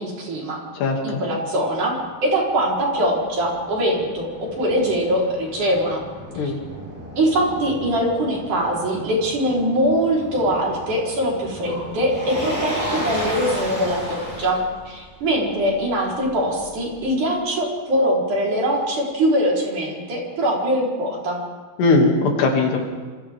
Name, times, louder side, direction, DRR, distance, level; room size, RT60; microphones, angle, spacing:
voice 1, 0.0-0.6 1.0-2.0 2.2-6.1 6.4-6.5 7.2-14.6 14.9-21.4, equal, 50° right, -3 dB, 5.6 m, -22 dB
Motor vehicle (road), 2.1-17.1, equal, 5° right, 7.4 m, -34 dB
voice 2, 21.8-22.8, left 3 dB, 80° left, 1 dB, 4.7 m, -18 dB
28.0 x 25.5 x 3.7 m, 1.4 s
omnidirectional pair, 4.7 m